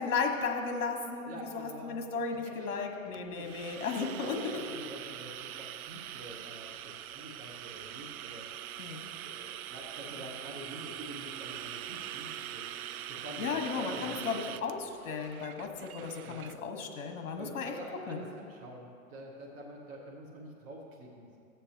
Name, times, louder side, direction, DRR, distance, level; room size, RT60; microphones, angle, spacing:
voice 1, 0.0-4.6 8.8-9.1 13.4-17.7 18.1-18.2, left 5 dB, 65° left, 3 dB, 1.4 m, -35 dB
voice 2, 1.2-2.0 2.4-2.7 3.4-3.5 4.1-8.5 9.2-12.7 13.1-14.5 16.2-16.4 17.4-21.4, right 1 dB, 15° right, -3 dB, 0.8 m, -47 dB
sound 1, 3.1-16.6, right 11 dB, 80° right, 0.5 m, -43 dB
15.0 x 8.1 x 2.9 m, 2.4 s
hypercardioid pair, 160°, 43 cm